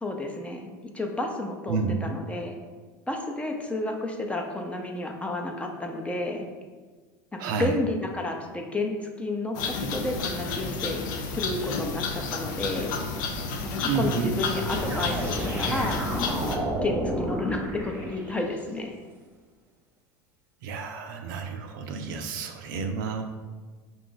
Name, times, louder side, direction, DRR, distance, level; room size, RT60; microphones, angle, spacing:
voice 1, 0.0-0.7 0.9-2.6 3.1-6.5 7.4-9.6 9.9-11.0 11.4-12.9 13.8-16.1 16.8-18.9, left 2 dB, 10° left, 2 dB, 0.6 m, -31 dB
voice 2, 1.7-2.1 7.4-7.7 13.9-14.3 20.6-23.2, right 5 dB, 70° right, 5 dB, 0.5 m, -30 dB
sound 1, 9.5-16.6, left 4 dB, 70° left, 0.6 m, -31 dB
sound 2, 14.7-18.6, right 1 dB, 20° right, 1.0 m, -31 dB
5.0 x 2.5 x 3.8 m, 1.4 s
hypercardioid pair, 85°, 11 cm